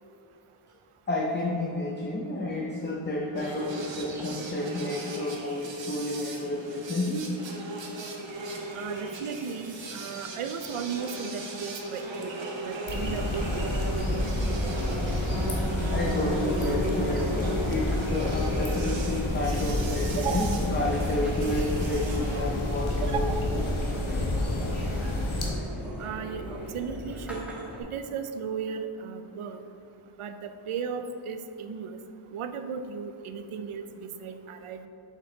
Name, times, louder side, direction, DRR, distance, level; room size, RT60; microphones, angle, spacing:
voice 1, 1.1-7.3 15.5-23.6, left 1 dB, 20° left, -2 dB, 0.5 m, -31 dB
sound 1, 3.3-22.4, right 2 dB, 60° right, 1.0 m, -37 dB
voice 2, 8.8-14.3 20.2-20.6 23.0-23.4 26.0-27.4 27.9-29.6 30.2-32.0 32.3-34.9, right 6 dB, 85° right, 9 dB, 0.6 m, -35 dB
sound 2, 12.9-25.5, left 1 dB, 70° left, 1.3 m, -29 dB
sound 3, 13.9-27.8, equal, ahead, 1.3 m, -39 dB
7.3 x 5.2 x 3.9 m, 2.8 s
wide cardioid pair, 135°, 50 cm